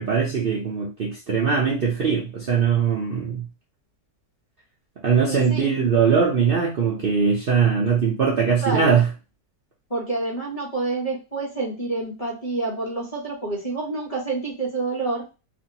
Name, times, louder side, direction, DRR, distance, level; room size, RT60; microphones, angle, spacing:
voice 1, 0.0-3.5 5.0-9.1, right 6 dB, 85° right, -3 dB, 0.4 m, -21 dB
voice 2, 5.3-5.7 8.6-9.0 9.9-15.2, right 3 dB, 30° left, -3 dB, 0.8 m, -28 dB
2.8 x 2.6 x 2.7 m, 0.30 s
omnidirectional pair, 1.8 m